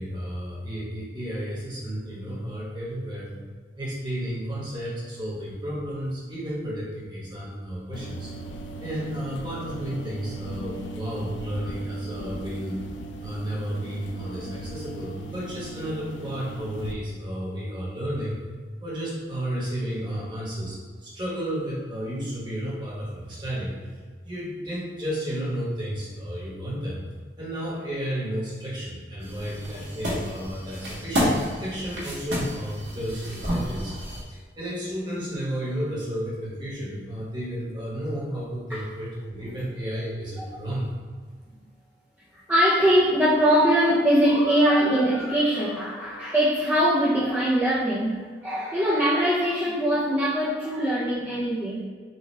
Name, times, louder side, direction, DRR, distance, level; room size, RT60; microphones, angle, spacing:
voice 1, 0.0-3.3 3.8-8.3 8.8-12.8 13.2-18.4 18.8-23.8 24.2-27.0 27.4-34.0 34.3-40.9, equal, 25° right, -6 dB, 1.2 m, -32 dB
sound 1, 7.9-16.9, right 2 dB, 90° left, 0.4 m, -38 dB
sound 2, 29.2-34.2, equal, 75° right, 1.4 m, -30 dB
voice 2, 42.5-51.8, equal, 10° right, -9 dB, 0.5 m, -22 dB
5.6 x 2.3 x 3.2 m, 1.5 s
head